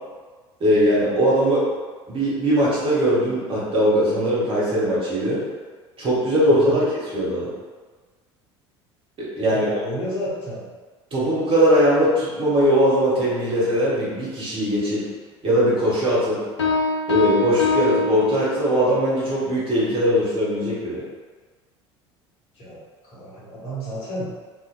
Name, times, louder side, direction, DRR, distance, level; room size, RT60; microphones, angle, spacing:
voice 1, 0.6-1.6 2.1-5.4 6.0-7.5 9.2-9.7 11.1-15.0 15.4-16.4 17.1-21.0, equal, 35° right, -7 dB, 1.0 m, -20 dB
voice 2, 6.5-6.8 9.5-10.7 22.5-24.3, right 1 dB, 40° left, -8 dB, 1.1 m, -32 dB
sound 1, 16.6-19.0, left 3 dB, 75° left, 0.5 m, -23 dB
2.7 x 2.2 x 2.5 m, 1.4 s
figure-of-eight pair, 65°, 15 cm